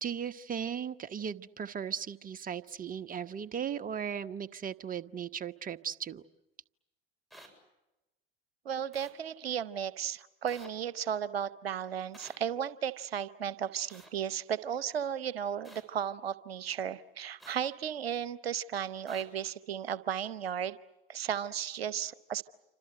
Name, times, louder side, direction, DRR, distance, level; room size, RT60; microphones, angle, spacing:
voice 1, 0.0-6.2, right 8 dB, 30° right, 12 dB, 1.2 m, -37 dB
sound 1, 7.3-7.5 8.9-9.1 10.5-10.7 12.1-12.4 13.9-14.1 15.6-15.8 17.4-17.6 19.1-19.2, right 1 dB, ahead, 7.9 m, -52 dB
voice 2, 8.6-20.8 21.1-22.4, right 9 dB, 80° right, 17 dB, 0.9 m, -35 dB
28.0 x 26.0 x 7.7 m, 0.98 s
figure-of-eight pair, 70°, 30 cm